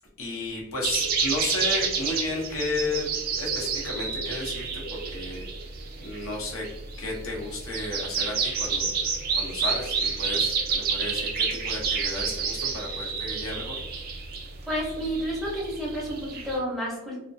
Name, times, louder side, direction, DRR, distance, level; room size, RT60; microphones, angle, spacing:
voice 1, 0.2-3.1 3.4-5.5 6.0-6.7 7.0-8.9 9.3-13.8, left 2 dB, 75° left, -2 dB, 0.7 m, -33 dB
sound 1, 0.8-16.6, right 5 dB, 45° right, 0.4 m, -29 dB
voice 2, 14.7-17.2, equal, ahead, -5 dB, 0.6 m, -30 dB
2.3 x 2.2 x 2.5 m, 0.91 s
head